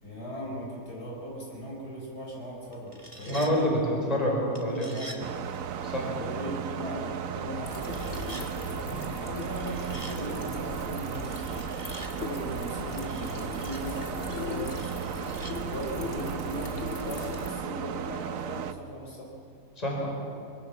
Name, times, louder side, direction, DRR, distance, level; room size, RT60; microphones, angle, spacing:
voice 1, 0.0-4.0 4.7-5.2 6.1-8.3 9.0-11.5 12.1-19.3, equal, 65° left, -2 dB, 5.6 m, -38 dB
sound 1, 2.7-3.5 4.5-5.2 7.8-8.5 9.4-10.2 11.1-12.1 12.9-13.8 14.7-15.5, right 1 dB, 20° right, 1.8 m, -46 dB
voice 2, 3.3-4.9 5.8-6.1 8.9-9.1 19.8-20.2, equal, 20° left, -1 dB, 4.9 m, -28 dB
sound 2, 5.2-18.7, right 9 dB, 60° right, 1.1 m, -35 dB
sound 3, 7.6-17.5, left 3 dB, 45° left, 2.2 m, -39 dB
23.0 x 22.0 x 7.1 m, 2.4 s
omnidirectional pair, 1.8 m